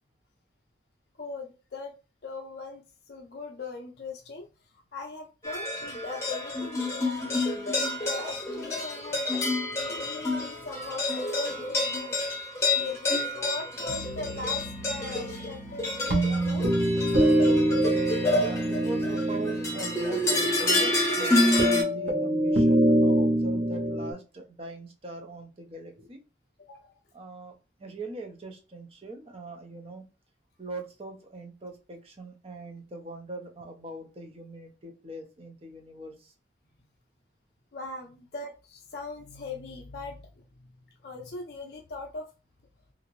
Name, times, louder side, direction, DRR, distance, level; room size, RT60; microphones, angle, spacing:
voice 1, 1.2-1.9 2.2-2.8 3.1-4.5 4.9-12.1 12.8-16.7 26.6-26.9 37.7-40.3 41.0-42.3, left 3 dB, 55° left, 2 dB, 0.5 m, -40 dB
sound 1, 5.4-21.8, left 2 dB, 15° left, 0.9 m, -28 dB
sound 2, 13.9-24.1, right 1 dB, 60° right, 1.0 m, -26 dB
voice 2, 18.3-26.2 27.1-27.5 27.8-30.0 30.6-36.3, right 2 dB, 30° right, 3 dB, 0.6 m, -41 dB
2.8 x 2.5 x 3.0 m, 0.33 s
head